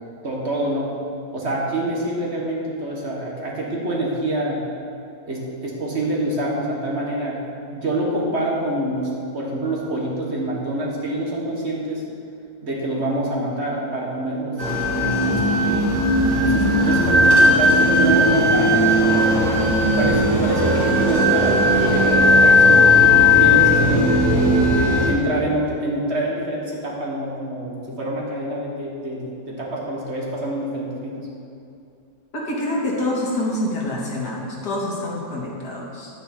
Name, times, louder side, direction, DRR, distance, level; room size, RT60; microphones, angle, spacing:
voice 1, 0.2-0.9 1.3-4.7 5.3-12.0 12.6-14.6 15.2-16.0 16.2-19.6 19.9-24.1 24.7-31.3, right 1 dB, 40° right, -3 dB, 1.9 m, -26 dB
sound 1, 14.6-25.1, left 1 dB, 90° right, 2.4 m, -16 dB
voice 2, 32.3-36.1, left 1 dB, 80° left, -4 dB, 2.5 m, -26 dB
10.0 x 9.2 x 4.4 m, 2.6 s
omnidirectional pair, 1.7 m